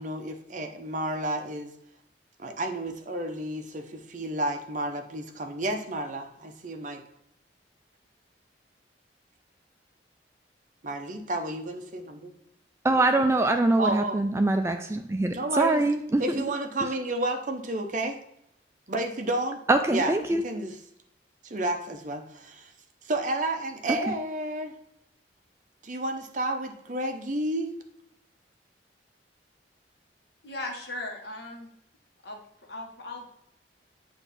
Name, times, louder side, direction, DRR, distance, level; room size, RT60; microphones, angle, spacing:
voice 1, 0.0-1.7 2.4-7.0 10.8-12.3 13.8-14.2 15.3-15.8 16.2-18.2 18.9-19.6 19.9-20.8 21.4-22.7 23.0-24.7 25.8-27.7, right 1 dB, 45° right, 0.7 m, -31 dB
voice 2, 12.8-16.4 19.7-20.4, right 2 dB, 15° right, 0.3 m, -23 dB
voice 3, 30.4-31.7 32.2-32.4 32.7-33.2, left 2 dB, 65° left, 1.2 m, -37 dB
7.9 x 2.7 x 5.6 m
head